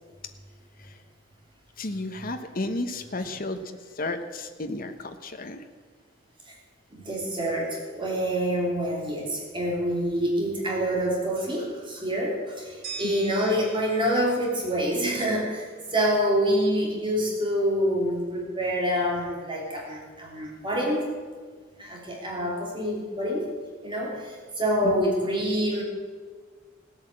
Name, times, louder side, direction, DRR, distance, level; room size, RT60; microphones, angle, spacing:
voice 1, 1.8-5.6 13.0-13.3 24.8-25.0, left 2 dB, 45° left, 7 dB, 1.1 m, -33 dB
voice 2, 6.9-21.1 21.8-23.5 23.8-25.8, equal, 25° right, -2 dB, 3.1 m, -26 dB
sound 1, 12.8-15.8, right 4 dB, 50° right, 4.6 m, -43 dB
16.5 x 8.5 x 7.7 m, 1.5 s
head